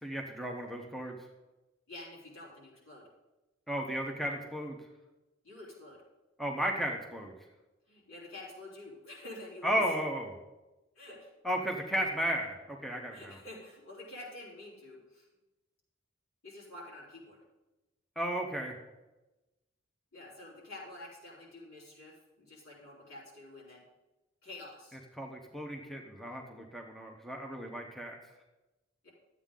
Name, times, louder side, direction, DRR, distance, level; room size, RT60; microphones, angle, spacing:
voice 1, 0.0-1.2 3.7-4.8 6.4-7.3 9.6-10.4 11.4-13.4 18.2-18.8 25.2-28.2, equal, ahead, 1 dB, 0.9 m, -34 dB
voice 2, 1.9-3.0 5.4-6.0 7.9-9.8 11.0-11.3 11.8-12.0 13.1-15.3 16.4-17.4 20.1-23.8 24.4-25.0 29.0-29.1, left 2 dB, 75° left, -5 dB, 3.6 m, -48 dB
12.0 x 8.2 x 3.8 m, 1.0 s
head